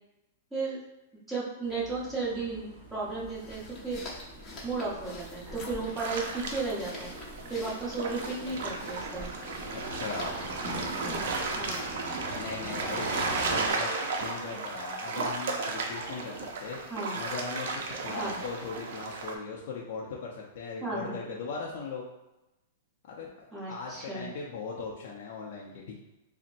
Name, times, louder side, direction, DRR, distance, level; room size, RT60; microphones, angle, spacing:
voice 1, 1.3-4.1 4.6-7.1 7.5-9.3 10.8-11.2 11.5-12.0 13.7-13.8 16.9-17.2 18.1-18.3 20.8-21.2 23.5-24.3, right 3 dB, 5° right, -9 dB, 1.1 m, -34 dB
sound 1, 1.6-13.7, right 1 dB, 20° right, 1.4 m, -43 dB
sound 2, 3.1-12.1, left 1 dB, 20° left, 0.9 m, -46 dB
sound 3, 6.0-19.3, right 3 dB, 65° right, 0.5 m, -34 dB
voice 2, 9.7-10.4 12.3-13.9 14.2-16.8 17.1-22.0 23.1-26.0, left 4 dB, 55° left, -3 dB, 0.5 m, -39 dB
4.0 x 2.1 x 2.6 m, 0.97 s
hypercardioid pair, 145°, 0 cm